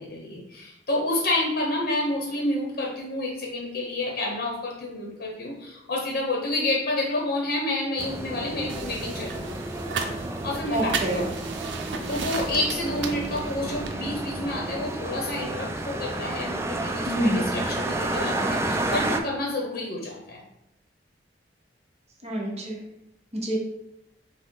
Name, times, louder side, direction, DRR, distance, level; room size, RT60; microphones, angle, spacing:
voice 1, 0.0-9.6 10.4-11.3 12.1-20.4, left 1 dB, 55° left, -1 dB, 0.8 m, -29 dB
sound 1, 8.0-19.2, right 2 dB, 15° right, 0.3 m, -31 dB
sound 2, 8.7-13.9, right 4 dB, 90° right, 0.5 m, -34 dB
voice 2, 10.7-11.3 17.0-17.6 22.2-22.8 23.3-23.6, right 1 dB, 40° right, -1 dB, 0.8 m, -27 dB
6.0 x 2.0 x 3.8 m, 0.88 s
head